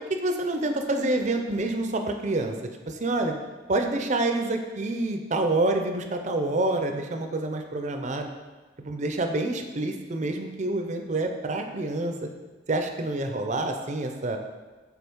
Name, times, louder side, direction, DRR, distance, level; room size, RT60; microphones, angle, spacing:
voice 1, 0.1-2.6 2.9-3.3 3.7-8.3 8.8-12.3 12.7-14.4, right 2 dB, 40° right, 5 dB, 0.5 m, -27 dB
5.3 x 4.1 x 4.6 m, 1.3 s
head